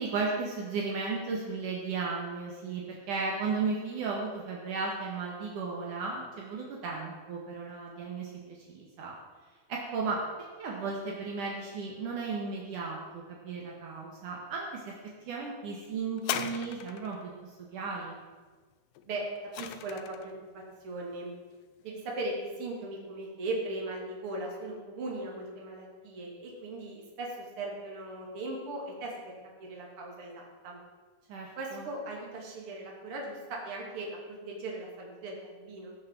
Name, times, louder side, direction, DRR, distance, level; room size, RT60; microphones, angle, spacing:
voice 1, 0.0-9.1 9.7-10.2 10.6-14.9 15.3-18.2 31.3-31.9, right 4 dB, 65° right, -2 dB, 3.2 m, -35 dB
sound 1, 16.2-17.2 19.0-20.3 21.1-21.2, left 11 dB, 75° left, 2.2 m, -37 dB
voice 2, 19.6-21.3 21.8-30.8 31.6-36.0, right 2 dB, 40° right, -1 dB, 3.3 m, -38 dB
17.0 x 6.6 x 7.6 m, 1.4 s
omnidirectional pair, 4.0 m